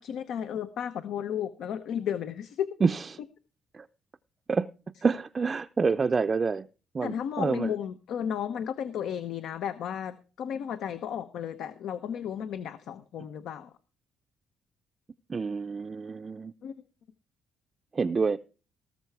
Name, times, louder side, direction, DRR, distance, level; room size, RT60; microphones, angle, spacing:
voice 1, 0.0-2.7 7.0-13.7 16.6-16.7, left 9 dB, 80° left, 0.9 m, -33 dB
voice 2, 5.0-6.7 6.9-7.7 15.3-16.5 17.9-18.4, right 4 dB, 35° right, 0.5 m, -27 dB
18.5 x 6.7 x 4.6 m
cardioid pair, 90°, 0 cm